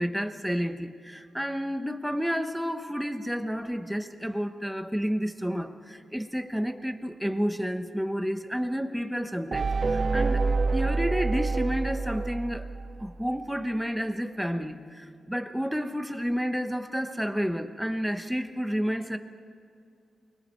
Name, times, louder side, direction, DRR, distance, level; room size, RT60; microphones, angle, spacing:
voice 1, 0.0-10.4 10.7-12.7 13.0-19.2, equal, ahead, 7 dB, 1.0 m, -30 dB
sound 1, 9.5-13.3, right 3 dB, 35° right, 0.5 m, -27 dB
29.0 x 21.5 x 4.5 m, 2.5 s
wide cardioid pair, 160°, 0 cm